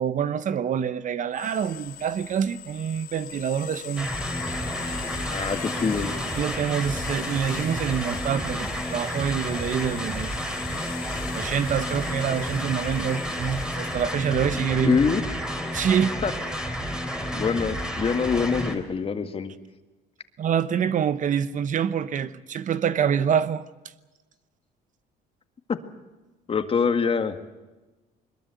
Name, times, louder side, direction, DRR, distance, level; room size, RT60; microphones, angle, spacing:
voice 1, 0.0-4.1 6.4-10.3 11.3-15.0 15.7-16.2 20.4-23.6, right 8 dB, 50° right, 1.0 m, -26 dB
sound 1, 1.3-16.0, left 10 dB, 65° left, 3.6 m, -41 dB
sound 2, 4.0-18.8, equal, 5° right, 3.4 m, -31 dB
voice 2, 5.3-6.1 14.8-15.2 16.2-16.3 17.3-19.5 25.7-25.8 26.5-27.4, left 5 dB, 35° left, 1.9 m, -24 dB
22.5 x 21.5 x 7.9 m
cardioid pair, 110°, 17 cm